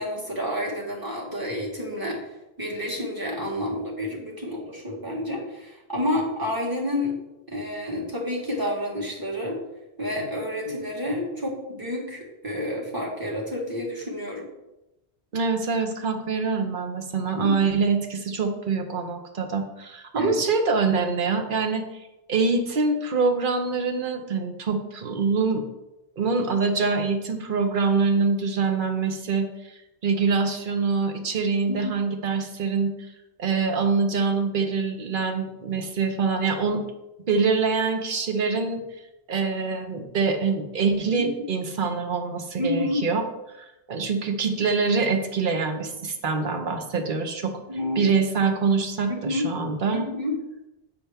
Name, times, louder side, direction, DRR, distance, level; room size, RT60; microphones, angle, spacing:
voice 1, 0.0-2.2 2.6-7.2 7.5-9.6 10.0-14.5 17.4-17.6 20.1-20.3 31.7-32.0 41.2-41.3 42.6-43.0 47.7-48.0 49.1-49.5 49.9-50.4, left 1 dB, 20° right, -2 dB, 1.4 m, -29 dB
voice 2, 15.3-21.9 22.3-25.6 26.2-29.5 30.0-32.9 33.4-36.8 37.3-38.8 39.3-43.2 43.6-47.6 48.0-50.1, right 4 dB, 55° right, 6 dB, 0.9 m, -25 dB
7.0 x 5.7 x 3.4 m, 0.95 s
omnidirectional pair, 1.1 m